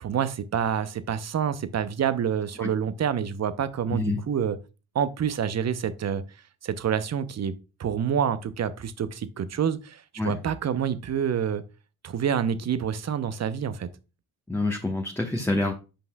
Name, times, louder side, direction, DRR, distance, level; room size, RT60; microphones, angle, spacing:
voice 1, 0.0-4.6 4.9-6.2 6.6-11.6 12.0-13.9, right 8 dB, 35° right, 0.7 m, -27 dB
voice 2, 14.5-15.7, left 2 dB, 5° left, 1.1 m, -27 dB
8.5 x 5.4 x 2.3 m
hypercardioid pair, 45°, 43 cm